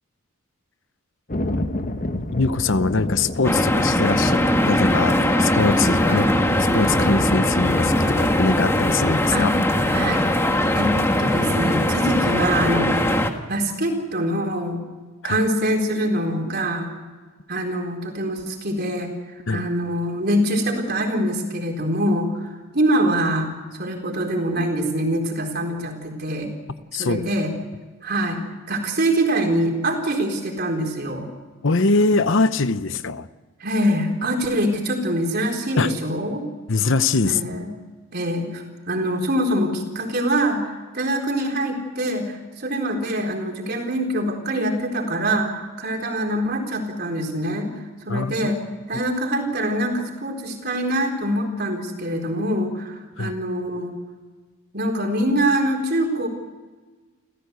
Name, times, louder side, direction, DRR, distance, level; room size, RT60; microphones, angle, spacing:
Thunder, 1.3-12.8, left 1 dB, 35° left, 1.3 m, -31 dB
voice 1, 2.1-4.4 4.7-6.3 6.7-9.5 15.2-15.4 19.5-19.6 26.9-27.2 31.6-33.3 35.8-35.9 36.7-37.4 48.1-48.5 53.2-53.3, left 3 dB, 55° left, 13 dB, 0.8 m, -22 dB
sound 1, 3.4-13.3, left 1 dB, 10° left, 1.5 m, -20 dB
voice 2, 9.9-10.3 10.7-13.2 13.5-14.8 15.2-16.9 17.5-19.1 19.5-23.5 23.8-26.5 26.9-27.5 28.0-28.4 28.7-31.3 33.6-36.4 37.3-37.7 38.1-47.7 48.0-48.6 48.9-53.9 54.7-56.3, right 1 dB, 45° right, 3 dB, 4.1 m, -24 dB
29.0 x 15.0 x 8.1 m, 1.4 s
head